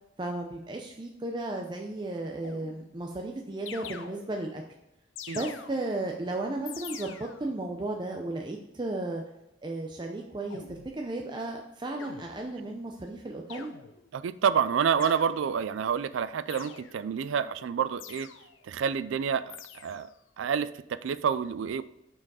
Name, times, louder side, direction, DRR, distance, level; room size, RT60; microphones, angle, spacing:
voice 1, 0.2-4.6 5.3-9.2 9.6-13.7, right 2 dB, 25° right, 1 dB, 0.5 m, -34 dB
sound 1, 2.4-3.1 3.7-4.6 5.2-6.1 6.7-7.6 10.5-11.0 12.0-12.7 13.5-14.2 15.0-15.7 16.5-17.2 18.0-18.7 19.5-20.2, left 7 dB, 80° left, 0.7 m, -45 dB
voice 2, 14.1-18.3 18.6-20.1 20.4-21.8, right 7 dB, 75° right, 15 dB, 0.3 m, -28 dB
6.1 x 4.6 x 4.7 m, 0.88 s
head